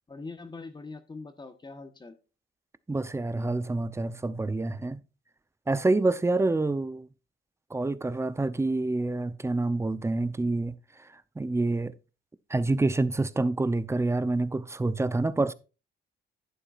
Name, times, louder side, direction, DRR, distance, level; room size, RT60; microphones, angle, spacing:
voice 1, 0.1-2.1, left 3 dB, 20° left, 1.2 m, -42 dB
voice 2, 2.9-5.0 5.7-7.1 7.7-10.7 11.4-11.9 12.5-15.5, right 2 dB, 15° right, 0.7 m, -27 dB
11.0 x 8.9 x 2.5 m
cardioid pair, 90°, 20 cm